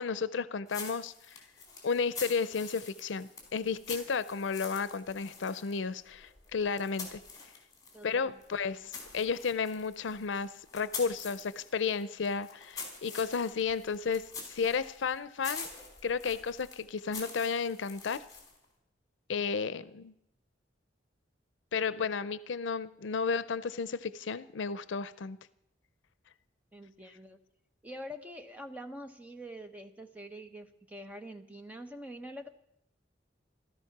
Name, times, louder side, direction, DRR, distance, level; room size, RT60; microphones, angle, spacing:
voice 1, 0.0-1.4 1.8-7.2 8.0-15.7 16.0-18.2 19.3-20.1 21.7-25.4, left 5 dB, 90° left, 16 dB, 0.5 m, -33 dB
sound 1, 0.7-8.1 8.4-18.6, left 4 dB, 20° left, 4.2 m, -46 dB
voice 2, 7.9-8.4 26.7-27.4 27.8-32.5, equal, 10° right, 6 dB, 1.1 m, -45 dB
16.0 x 13.5 x 5.9 m, 0.79 s
head